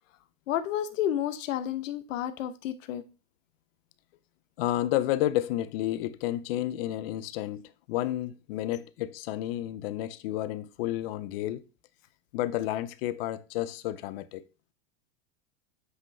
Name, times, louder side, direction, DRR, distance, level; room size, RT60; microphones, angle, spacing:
voice 1, 0.5-3.0, left 11 dB, 90° left, 0.8 m, -31 dB
voice 2, 4.6-11.6 12.3-14.4, left 14 dB, 50° left, 0.7 m, -31 dB
7.9 x 5.3 x 3.2 m
supercardioid pair, 155°, 38 cm